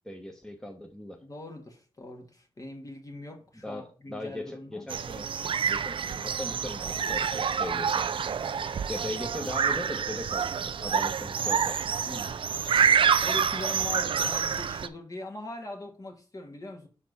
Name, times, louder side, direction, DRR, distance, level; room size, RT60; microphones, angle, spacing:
voice 1, 0.0-1.2 3.6-5.3 5.7-8.1 8.9-11.8, left 1 dB, 5° left, 1.2 m, -38 dB
voice 2, 1.2-4.9 7.7-8.0 8.3-8.9 12.0-12.9 13.2-16.9, left 2 dB, 35° left, 1.8 m, -42 dB
sound 1, 4.9-14.9, right 7 dB, 65° right, 0.5 m, -27 dB
6.4 x 4.3 x 5.3 m
wide cardioid pair, 85°, 10 cm